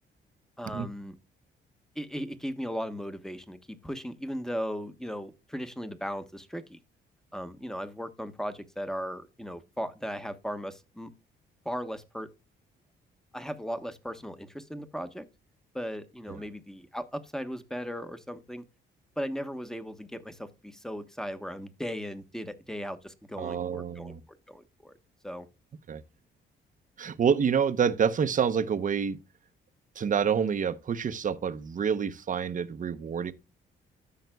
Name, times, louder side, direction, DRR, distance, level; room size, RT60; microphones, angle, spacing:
voice 1, 0.6-1.2 1.9-6.8 7.3-11.1 11.6-12.3 13.3-15.2 15.7-18.6 19.2-24.1 24.5-24.9 25.2-25.5, equal, ahead, 1.1 m, -37 dB
voice 2, 23.4-24.2 25.9-26.0 27.0-29.2 30.0-33.3, right 7 dB, 40° right, 0.8 m, -27 dB
13.5 x 5.7 x 2.3 m
cardioid pair, 90°, 20 cm